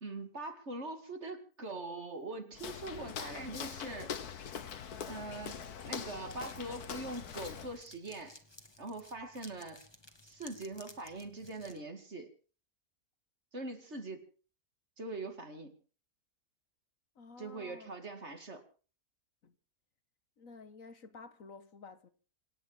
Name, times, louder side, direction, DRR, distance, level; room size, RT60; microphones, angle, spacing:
voice 1, 0.0-4.2 5.1-8.4 8.8-9.8 10.2-12.3 13.5-14.2 15.0-15.8 17.4-18.6, right 2 dB, 45° right, 2.5 m, -42 dB
Walk footsteps, 2.5-7.8, left 7 dB, 80° left, 1.8 m, -43 dB
sound 1, 5.2-11.8, left 2 dB, 15° left, 1.9 m, -57 dB
voice 2, 17.1-17.9 19.4-19.5 20.4-22.1, left 4 dB, 60° left, 1.6 m, -52 dB
26.5 x 9.4 x 5.7 m
omnidirectional pair, 1.6 m